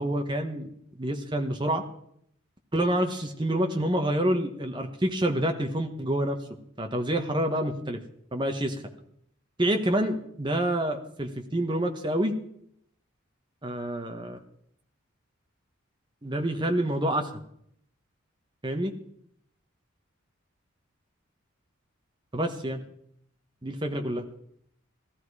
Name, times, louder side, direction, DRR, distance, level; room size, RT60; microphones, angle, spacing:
voice 1, 0.0-1.8 2.7-6.4 6.8-8.0 8.3-8.8 9.6-12.3 13.6-14.4 16.2-17.3 18.6-18.9 22.3-22.8 23.6-24.2, right 1 dB, 20° right, 4 dB, 1.3 m, -27 dB
16.0 x 13.0 x 4.9 m, 0.71 s
head